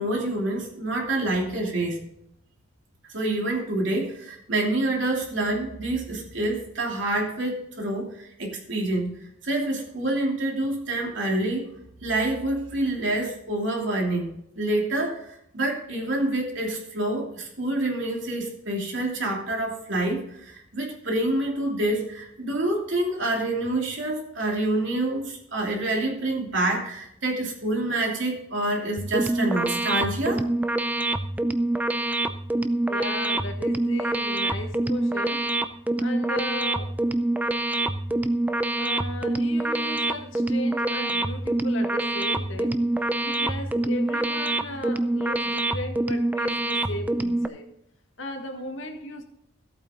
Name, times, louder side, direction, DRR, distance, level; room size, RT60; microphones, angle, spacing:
voice 1, 0.0-2.0 3.1-9.1 9.4-11.7 12.0-30.4, right 1 dB, 65° right, -1 dB, 3.0 m, -27 dB
sound 1, 29.0-47.5, right 1 dB, 10° right, 0.5 m, -26 dB
voice 2, 32.9-35.4 36.0-36.9 38.8-42.8 43.2-47.7 48.2-49.2, left 1 dB, 70° left, 4 dB, 1.7 m, -36 dB
14.5 x 8.6 x 3.8 m, 0.78 s
head